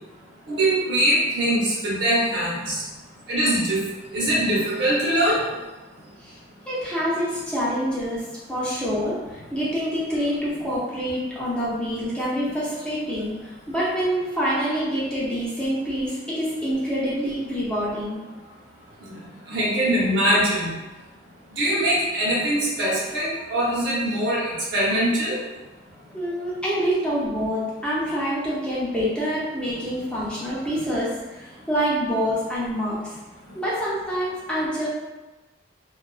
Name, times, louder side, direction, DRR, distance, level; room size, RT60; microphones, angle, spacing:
voice 1, 0.5-2.8 3.3-3.9 4.1-5.4 19.5-20.7 21.6-25.4, right 1 dB, 65° right, -6 dB, 0.9 m, -22 dB
voice 2, 6.7-18.2 26.1-33.2 33.5-34.9, equal, 5° left, -8 dB, 0.6 m, -26 dB
2.3 x 2.3 x 2.3 m, 1.1 s
head